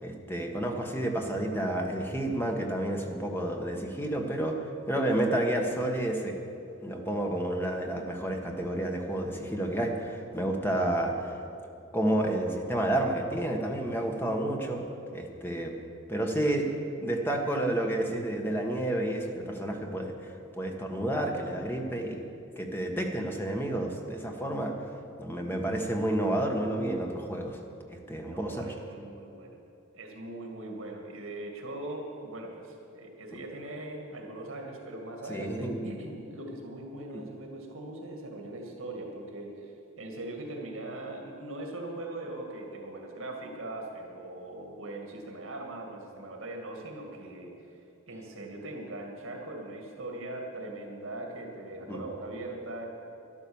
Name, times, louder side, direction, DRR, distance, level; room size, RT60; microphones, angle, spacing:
voice 1, 0.0-4.6 4.9-6.4 6.8-11.4 11.9-14.9 15.1-15.7 16.1-16.7 17.0-22.2 22.6-24.7 25.2-27.6 27.9-28.7 35.3-35.8 37.1-37.2 51.9-52.0, right 1 dB, 10° left, 2 dB, 1.3 m, -30 dB
voice 2, 28.2-29.6 29.9-39.7 40.0-47.5 48.1-52.9, right 2 dB, 75° right, 1 dB, 2.2 m, -40 dB
12.5 x 12.0 x 7.1 m, 2.6 s
head